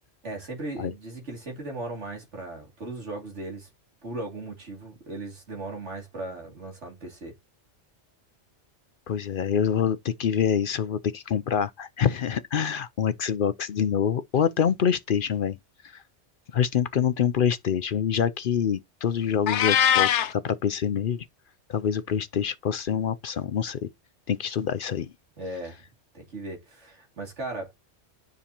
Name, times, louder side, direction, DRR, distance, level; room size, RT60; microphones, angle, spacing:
voice 1, 0.2-3.7 4.0-7.3 25.4-25.8 26.1-27.7, right 2 dB, 85° right, 2.9 m, -37 dB
voice 2, 9.1-15.6 15.8-16.0 16.5-21.3 21.7-23.9 24.3-25.1, left 8 dB, 60° left, 0.7 m, -26 dB
Meow, 19.5-20.3, left 9 dB, 80° left, 1.0 m, -21 dB
9.9 x 5.2 x 2.9 m
omnidirectional pair, 1.2 m